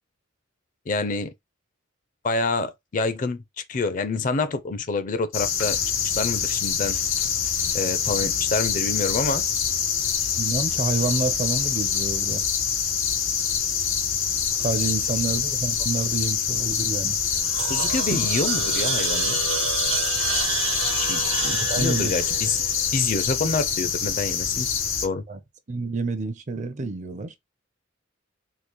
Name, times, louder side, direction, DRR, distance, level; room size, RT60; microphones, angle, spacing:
voice 1, 0.9-1.3 2.2-7.0 7.7-9.5 17.7-19.4 21.0-22.6 22.9-24.7 25.0-25.2, left 3 dB, 40° left, 0.4 m, -27 dB
sound 1, 5.3-25.1, left 7 dB, 80° left, 0.8 m, -25 dB
voice 2, 10.4-12.4 14.6-17.2 18.1-18.3 21.5-22.1 25.3-25.4 25.7-27.4, right 3 dB, 35° right, 0.5 m, -28 dB
sound 2, 17.2-23.5, right 7 dB, 70° right, 0.7 m, -29 dB
3.7 x 2.4 x 3.0 m
head